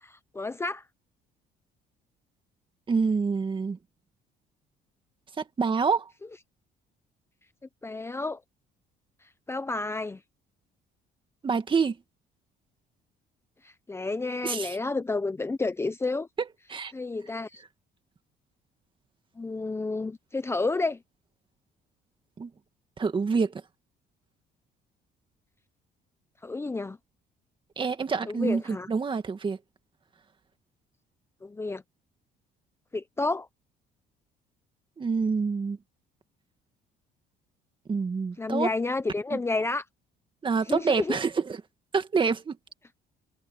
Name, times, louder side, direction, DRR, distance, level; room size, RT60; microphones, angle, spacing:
voice 1, 0.0-0.8 7.8-8.4 9.5-10.2 13.6-16.3 16.9-17.6 19.4-21.0 26.4-27.0 28.3-28.9 31.4-31.8 32.9-33.5 38.4-39.8 40.7-41.2, left 3 dB, 15° left, 0.8 m, -30 dB
voice 2, 2.9-3.8 5.4-6.1 11.4-12.0 14.4-14.8 16.7-16.9 22.4-22.5 23.0-23.6 27.8-29.6 35.0-35.8 37.9-38.7 39.3-39.4 40.4-41.6 41.9-42.6, right 5 dB, 30° right, 2.1 m, -27 dB
cardioid pair, 110°, 17 cm